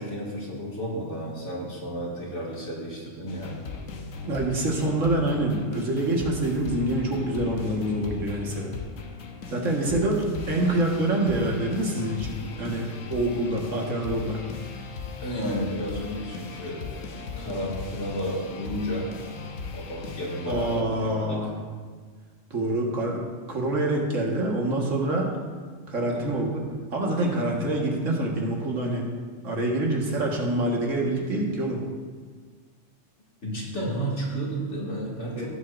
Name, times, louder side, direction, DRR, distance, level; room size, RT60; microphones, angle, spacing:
voice 1, 0.0-3.6 9.8-10.2 15.2-19.2 19.7-21.5 26.1-26.7 33.4-35.5, equal, 65° left, -5 dB, 2.6 m, -32 dB
sound 1, 3.3-20.8, left 5 dB, 85° left, 1.3 m, -38 dB
voice 2, 4.2-8.8 9.5-14.4 20.5-21.6 22.5-25.3 25.9-26.6 26.9-29.1 29.4-31.9 35.4-35.5, right 1 dB, 75° right, -1 dB, 1.9 m, -26 dB
17.0 x 7.7 x 2.6 m, 1.5 s
omnidirectional pair, 1.3 m